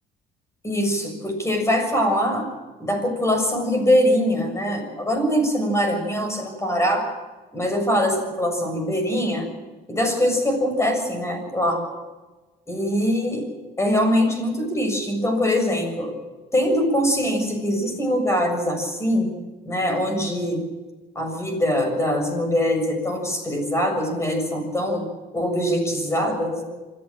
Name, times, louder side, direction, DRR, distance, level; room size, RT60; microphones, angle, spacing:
voice 1, 0.6-2.5 2.8-7.1 7.5-9.5 9.9-11.8 12.7-13.5 13.8-16.2 16.5-19.3 19.7-20.6 21.2-25.0 25.3-26.6, equal, 15° left, 5 dB, 7.1 m, -22 dB
26.0 x 15.5 x 7.4 m, 1.2 s
cardioid pair, 110°, 17 cm